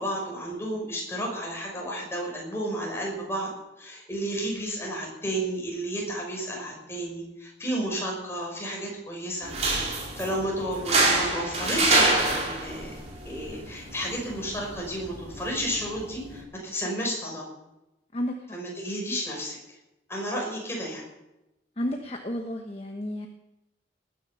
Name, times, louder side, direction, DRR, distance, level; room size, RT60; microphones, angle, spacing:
voice 1, 0.0-3.5 3.8-9.5 10.2-12.9 13.2-17.4 18.5-19.6 20.1-21.1, equal, 15° left, -2 dB, 5.9 m, -32 dB
sound 1, 9.4-16.4, right 2 dB, 40° right, 4.2 m, -27 dB
voice 2, 21.8-23.3, equal, 35° left, 3 dB, 1.2 m, -31 dB
19.5 x 9.8 x 7.0 m, 0.95 s
head